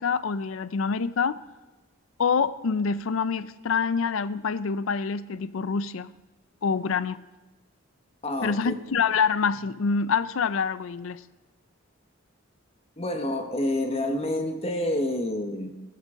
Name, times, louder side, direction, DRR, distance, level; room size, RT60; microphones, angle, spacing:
voice 1, 0.0-1.4 2.2-6.1 6.6-7.2 8.4-11.2, left 5 dB, 75° left, 0.5 m, -26 dB
voice 2, 8.2-8.7 13.0-15.7, left 1 dB, 30° left, 1.0 m, -28 dB
16.0 x 12.5 x 3.7 m
head